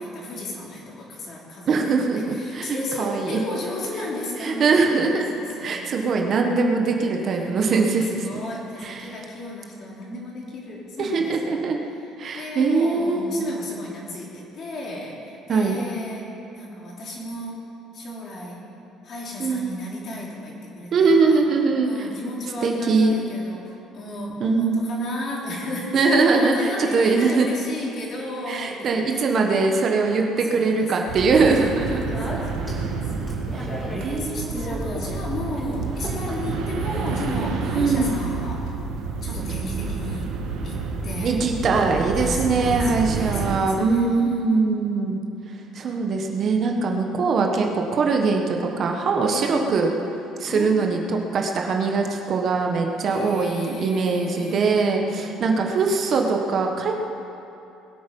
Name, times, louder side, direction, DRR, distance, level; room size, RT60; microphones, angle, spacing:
voice 1, 0.0-6.8 7.3-11.6 12.0-18.6 19.0-21.4 21.8-29.3 30.5-31.3 31.7-32.7 33.0-33.1 33.9-38.7 39.2-40.3 40.6-41.4 42.1-44.8 46.6-46.7 49.3-49.6 50.5-51.0 53.1-55.7, left 1 dB, 40° left, -3 dB, 3.3 m, -34 dB
voice 2, 1.7-3.4 4.4-5.2 5.6-8.4 8.8-9.1 11.0-11.8 12.2-13.4 15.5-15.8 19.4-19.7 20.9-22.1 22.6-23.1 24.4-24.8 25.9-27.5 28.5-32.3 33.5-34.8 35.6-35.8 37.7-38.1 41.2-45.2 45.7-49.9 50.4-51.0 51.3-56.9, right 4 dB, 40° right, 2 dB, 1.2 m, -22 dB
sound 1, 31.1-43.6, right 4 dB, 85° right, 1.7 m, -29 dB
Speech, 31.7-37.8, equal, 15° left, 2.4 m, -37 dB
21.0 x 8.7 x 5.4 m, 2.7 s
cardioid pair, 155°, 0 cm